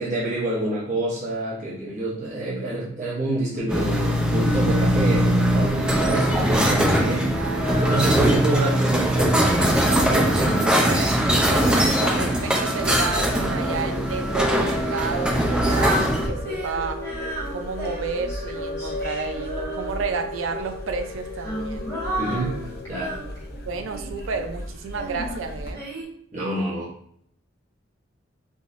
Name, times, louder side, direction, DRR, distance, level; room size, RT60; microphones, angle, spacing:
voice 1, 0.0-7.5 7.8-9.5 9.9-10.6 22.2-22.6 22.9-23.1 26.3-26.9, right 1 dB, 40° right, -8 dB, 0.8 m, -27 dB
sound 1, 3.7-16.3, right 1 dB, 5° right, 0.4 m, -21 dB
voice 2, 7.4-7.8 10.6-17.0 17.5-21.9 23.7-25.9, right 4 dB, 85° right, 7 dB, 0.4 m, -31 dB
Female singing, 7.6-8.7 9.2-14.0 14.8-20.3 21.1-24.2 24.9-26.0, right 1 dB, 15° left, 1.4 m, -34 dB
sound 2, 12.7-25.7, left 1 dB, 50° left, 0.5 m, -34 dB
3.6 x 2.6 x 2.5 m, 0.67 s
head